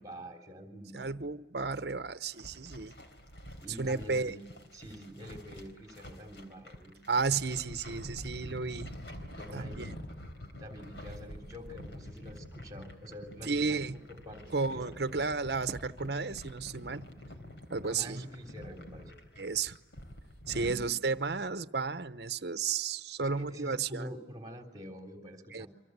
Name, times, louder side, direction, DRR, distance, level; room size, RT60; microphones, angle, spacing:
voice 1, 0.0-1.1 3.6-4.4 4.7-7.0 9.3-10.0 10.6-13.8 14.1-15.0 17.8-19.1 20.5-20.8 23.2-25.7, equal, 20° right, 6 dB, 3.7 m, -46 dB
voice 2, 0.9-2.9 3.8-4.3 7.1-8.9 9.5-9.9 13.4-14.0 14.5-17.1 17.7-18.2 19.4-19.8 20.5-24.1 25.5-25.7, right 4 dB, 65° right, 11 dB, 0.9 m, -33 dB
sound 1, 2.3-20.8, left 1 dB, 80° left, 3.8 m, -47 dB
29.0 x 25.0 x 8.2 m, 1.2 s
head